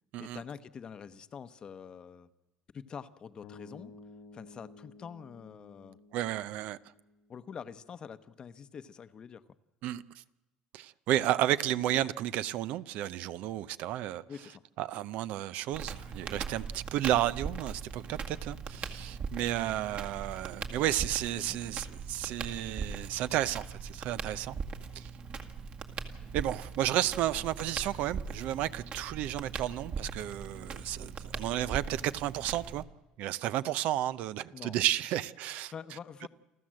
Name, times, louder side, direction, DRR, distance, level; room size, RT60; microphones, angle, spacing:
voice 1, 0.2-2.3 2.7-3.9 4.3-6.0 7.3-9.4 14.3-14.6 21.0-21.1 21.5-21.8 27.3-27.4 34.5-34.8 35.7-36.3, left 7 dB, 35° left, 0.9 m, -46 dB
sound 1, 3.4-7.6, left 3 dB, 70° left, 1.8 m, -54 dB
voice 2, 6.1-6.8 9.8-10.0 10.7-14.2 14.8-24.6 24.9-25.1 26.3-32.8 33.2-35.7, right 13 dB, 65° right, 0.7 m, -32 dB
Crackle, 15.7-32.8, right 5 dB, 50° right, 2.0 m, -40 dB
29.0 x 13.0 x 7.6 m
cardioid pair, 130°, 3 cm